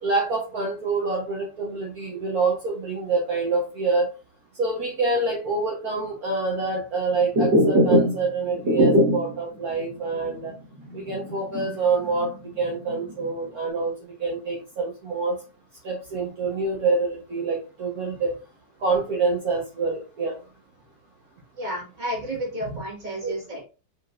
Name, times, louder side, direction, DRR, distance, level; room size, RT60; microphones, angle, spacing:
voice 1, 0.0-4.1 4.6-10.5 10.9-13.9 14.2-15.4 15.8-18.3 18.8-20.4 23.2-23.3, right 3 dB, 55° right, -3 dB, 1.7 m, -26 dB
sound 1, 7.2-8.3 8.5-9.4 9.8-9.9 10.3-10.4 10.9-12.3 12.6-13.3, equal, 85° right, 2.2 m, -21 dB
voice 2, 21.6-23.6, equal, 25° right, -3 dB, 2.0 m, -31 dB
5.5 x 3.7 x 2.5 m, 0.32 s
omnidirectional pair, 1.9 m